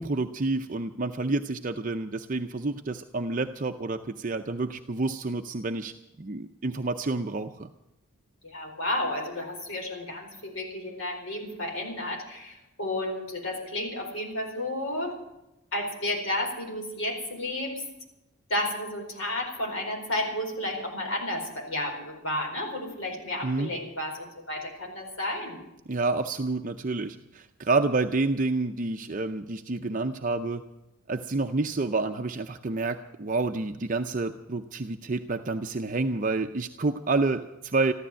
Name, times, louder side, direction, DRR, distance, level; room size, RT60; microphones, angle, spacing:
voice 1, 0.0-7.7 23.4-23.7 25.9-30.6 31.1-37.9, right 3 dB, 40° right, 6 dB, 0.5 m, -29 dB
voice 2, 8.4-15.2 15.7-17.8 18.5-25.6, left 1 dB, 70° left, 1 dB, 4.6 m, -32 dB
14.0 x 12.5 x 7.6 m, 0.93 s
head